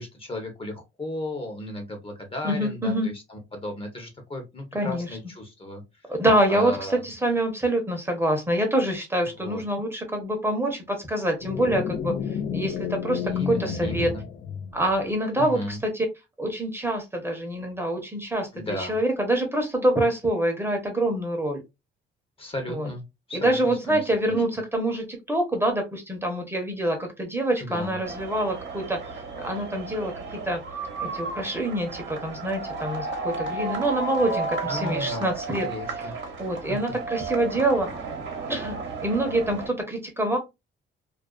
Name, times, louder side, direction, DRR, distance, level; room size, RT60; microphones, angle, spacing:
voice 1, 0.0-6.0 6.5-7.0 9.4-9.6 13.2-14.2 15.3-15.8 18.5-19.0 22.4-23.0 23.3-24.0 27.6-28.0 34.6-35.3 35.6-36.2 36.7-36.8, left 1 dB, 30° left, 0.8 m, -35 dB
voice 2, 2.4-3.1 4.7-5.1 6.1-14.1 14.7-16.1 16.4-21.6 22.7-22.9 23.3-29.0 29.3-30.6 31.0-35.7 36.4-37.9 38.5-38.8 39.0-40.4, right 1 dB, 10° right, 0.8 m, -26 dB
sound 1, 11.4-15.1, left 7 dB, 50° left, 0.4 m, -31 dB
sound 2, 28.0-39.7, right 4 dB, 65° right, 0.9 m, -33 dB
2.4 x 2.3 x 2.2 m
cardioid pair, 90°, 20 cm